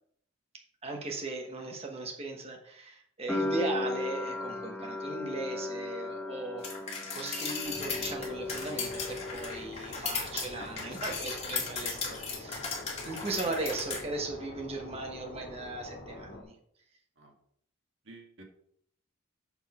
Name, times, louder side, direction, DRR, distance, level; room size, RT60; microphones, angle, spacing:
voice 1, 0.8-6.6 7.1-12.7 13.0-16.5, right 2 dB, 30° right, 1 dB, 1.3 m, -38 dB
sound 1, 3.3-10.1 10.3-11.2, left 2 dB, 5° left, 0.9 m, -37 dB
sound 2, 6.6-14.0, left 5 dB, 30° left, 2.1 m, -36 dB
sound 3, 7.6-16.4, left 2 dB, 60° left, 1.7 m, -46 dB
voice 2, 18.0-18.4, right 2 dB, 65° right, 1 dB, 1.8 m, -51 dB
7.1 x 6.3 x 4.3 m, 0.66 s
head